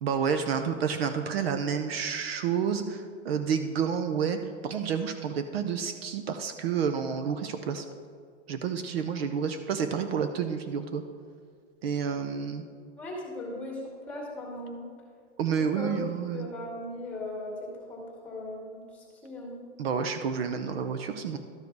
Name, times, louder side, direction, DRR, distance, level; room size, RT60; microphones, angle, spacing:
voice 1, 0.0-4.4 4.6-7.8 8.5-11.0 11.8-12.6 15.4-16.5 19.8-21.4, right 7 dB, 55° right, 8 dB, 0.7 m, -29 dB
voice 2, 13.0-14.9 15.6-16.0 16.3-19.6, left 1 dB, 5° left, -3 dB, 2.0 m, -38 dB
12.5 x 5.0 x 4.7 m, 2.1 s
hypercardioid pair, 155°, 36 cm